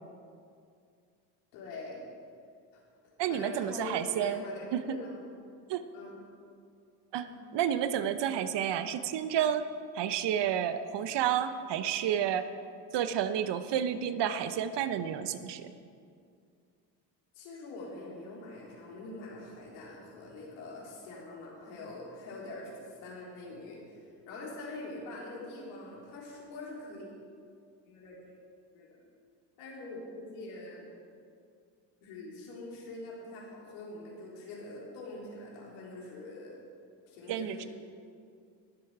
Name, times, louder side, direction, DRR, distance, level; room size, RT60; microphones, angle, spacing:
voice 1, 1.5-2.0 2.7-2.8 3.3-5.3 5.9-6.2 7.2-7.4 17.3-27.1 27.9-28.2 28.7-29.0 29.6-30.9 32.0-36.6 37.1-37.7, left 2 dB, 80° left, -3 dB, 3.6 m, -44 dB
voice 2, 3.2-4.4 4.7-4.8 5.7-5.8 7.1-9.7 9.9-12.5 12.9-15.7 37.3-37.6, right 9 dB, 55° right, 11 dB, 0.9 m, -30 dB
20.5 x 7.9 x 4.8 m, 2.3 s
hypercardioid pair, 70°, 50 cm